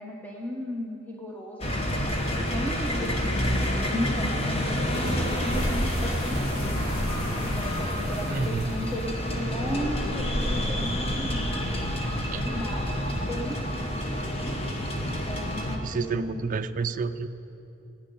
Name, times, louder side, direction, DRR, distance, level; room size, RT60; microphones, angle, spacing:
voice 1, 0.0-1.7 2.5-6.8 7.5-11.5 12.3-14.1 15.1-16.5, left 1 dB, 10° left, -2 dB, 0.9 m, -35 dB
sound 1, 1.6-15.8, equal, 30° left, 1.0 m, -28 dB
sound 2, 4.7-9.8, left 1 dB, 75° left, 2.8 m, -40 dB
voice 2, 8.3-8.7 12.3-12.6 15.8-17.3, right 5 dB, 40° right, 9 dB, 0.4 m, -30 dB
16.5 x 9.4 x 5.4 m, 2.8 s
head